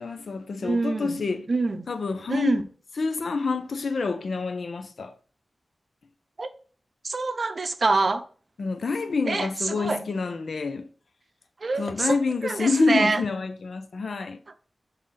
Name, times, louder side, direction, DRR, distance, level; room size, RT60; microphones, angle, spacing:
voice 1, 0.0-1.5 1.9-2.6 3.0-5.1 8.6-10.9 11.8-14.4, left 4 dB, 75° left, 0.5 m, -27 dB
voice 2, 0.6-1.2 1.5-1.8 2.3-2.6 6.4-6.5 7.0-8.2 9.3-10.0 11.6-12.2 12.4-13.2, right 3 dB, 50° right, 0.6 m, -25 dB
6.4 x 2.7 x 5.5 m
wide cardioid pair, 120°, 0 cm